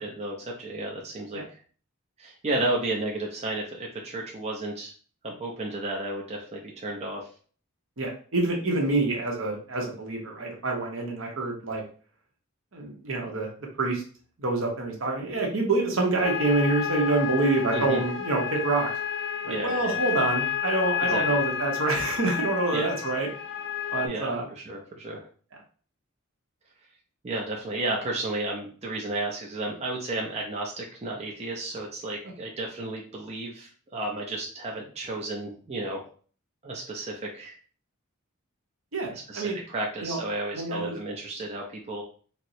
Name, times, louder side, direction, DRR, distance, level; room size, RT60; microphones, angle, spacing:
voice 1, 0.0-1.6 2.2-4.9 5.2-7.3 17.7-18.0 19.5-20.0 21.0-21.4 22.7-22.9 24.0-25.2 27.2-36.0 36.6-37.6 39.1-42.0, right 2 dB, 30° right, -1 dB, 0.5 m, -33 dB
voice 2, 8.0-11.8 12.7-14.0 14.4-18.9 19.4-23.3 23.9-24.4 38.9-39.6 40.0-40.2 40.5-41.0, right 3 dB, 70° right, 0 dB, 0.9 m, -27 dB
sound 1, 16.2-24.1, left 9 dB, 60° left, 0.4 m, -30 dB
4.2 x 2.1 x 2.6 m, 0.42 s
head